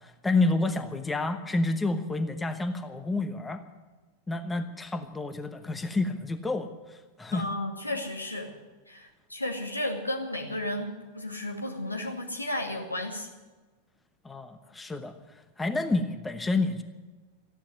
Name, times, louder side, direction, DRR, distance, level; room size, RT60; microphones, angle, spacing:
voice 1, 0.0-3.6 4.3-7.5 14.2-15.1 15.6-16.8, left 2 dB, 10° left, 8 dB, 1.0 m, -29 dB
voice 2, 7.3-8.5 8.9-13.3, left 1 dB, 85° left, 2 dB, 2.3 m, -33 dB
14.5 x 10.5 x 9.3 m, 1.3 s
figure-of-eight pair, 90°, 0 cm